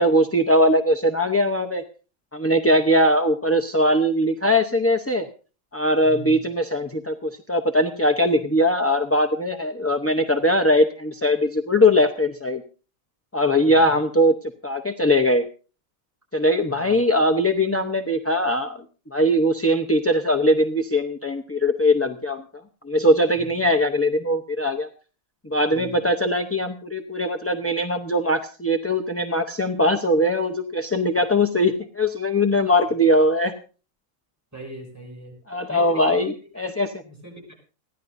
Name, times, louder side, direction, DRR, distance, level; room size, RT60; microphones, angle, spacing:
voice 1, 0.0-1.8 2.3-5.3 5.7-12.6 13.3-14.3 14.6-15.4 16.3-18.8 19.1-22.4 22.8-24.9 25.4-33.5 35.5-36.9, left 1 dB, 15° left, 4 dB, 0.6 m, -21 dB
voice 2, 6.0-6.4 13.8-13.9 16.7-16.9 23.4-23.6 25.7-26.0 34.5-36.2 37.0-37.5, right 1 dB, 10° right, 1 dB, 5.7 m, -40 dB
29.5 x 11.0 x 2.6 m, 0.36 s
omnidirectional pair, 1.4 m